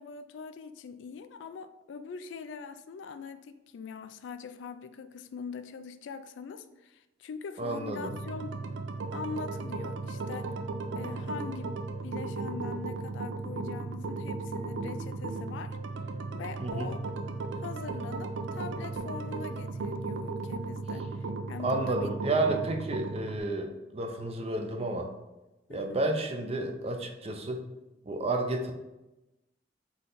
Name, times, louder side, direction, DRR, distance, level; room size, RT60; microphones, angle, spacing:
voice 1, 0.0-8.6 9.1-10.6 10.9-11.7 12.0-15.8 16.3-17.0 17.6-22.1 25.7-26.0, left 5 dB, 85° left, 11 dB, 0.3 m, -42 dB
voice 2, 7.6-8.1 16.6-16.9 21.6-25.1 25.7-27.6 28.0-28.7, right 2 dB, 35° right, 4 dB, 0.5 m, -31 dB
sound 1, 8.0-23.4, right 3 dB, 85° right, 0.5 m, -36 dB
4.0 x 3.2 x 3.8 m, 1.0 s
head